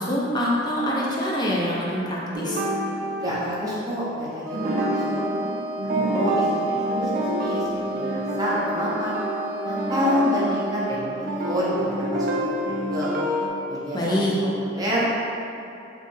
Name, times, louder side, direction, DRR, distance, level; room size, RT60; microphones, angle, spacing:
voice 1, 0.0-2.6 13.9-14.3, left 1 dB, 20° left, -5 dB, 0.5 m, -25 dB
sound 1, 2.3-4.1 4.5-13.5, right 1 dB, 45° right, 0.4 m, -27 dB
voice 2, 3.2-5.3 5.8-6.6 7.0-7.1 7.4-7.7 7.9-9.2 9.6-13.1 13.7-14.3 14.6-15.0, equal, 20° right, -8 dB, 0.7 m, -28 dB
Wind instrument woodwind instrument, 4.4-11.2, equal, 80° right, 0.7 m, -34 dB
3.3 x 3.1 x 3.1 m, 2.7 s
head